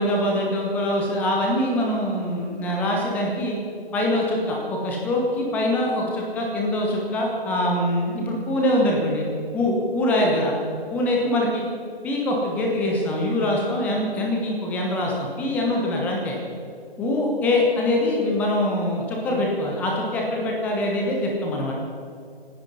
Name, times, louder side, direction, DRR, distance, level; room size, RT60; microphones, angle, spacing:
voice 1, 0.0-3.5 3.9-9.3 9.5-10.6 10.9-11.6 12.0-16.4 17.0-21.7, left 1 dB, 5° left, -1 dB, 1.1 m, -23 dB
25.0 x 10.0 x 5.5 m, 2.4 s
figure-of-eight pair, 145°, 31 cm